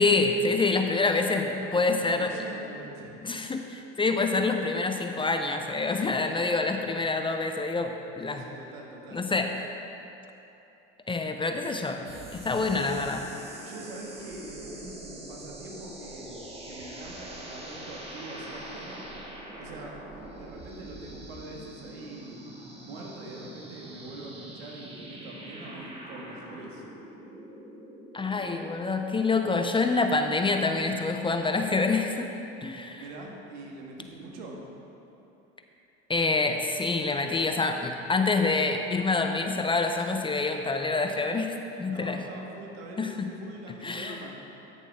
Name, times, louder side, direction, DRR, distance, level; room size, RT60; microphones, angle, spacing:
voice 1, 0.0-2.3 3.2-8.4 9.1-9.5 11.1-12.0 12.3-13.3 28.1-32.3 32.6-33.0 36.1-42.2 43.0-43.2 43.8-44.2, left 3 dB, 15° left, 5 dB, 0.6 m, -26 dB
voice 2, 1.6-3.2 8.3-9.2 13.6-19.1 19.6-22.4 22.8-26.9 33.0-34.6 41.9-44.3, right 2 dB, 80° right, -1 dB, 1.7 m, -43 dB
sound 1, 12.0-28.9, right 1 dB, 20° right, 1.9 m, -44 dB
13.5 x 7.0 x 3.6 m, 3.0 s
hypercardioid pair, 85°, 31 cm